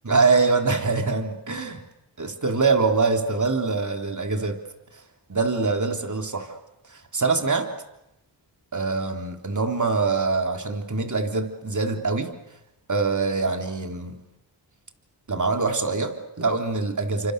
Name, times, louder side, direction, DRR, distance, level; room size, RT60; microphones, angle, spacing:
voice 1, 0.0-1.8 2.2-4.6 5.3-6.6 6.9-7.7 8.7-12.3 12.9-14.2 15.3-17.3, right 4 dB, 40° right, 4 dB, 3.6 m, -24 dB
29.0 x 25.0 x 6.8 m, 0.91 s
cardioid pair, 40°, 46 cm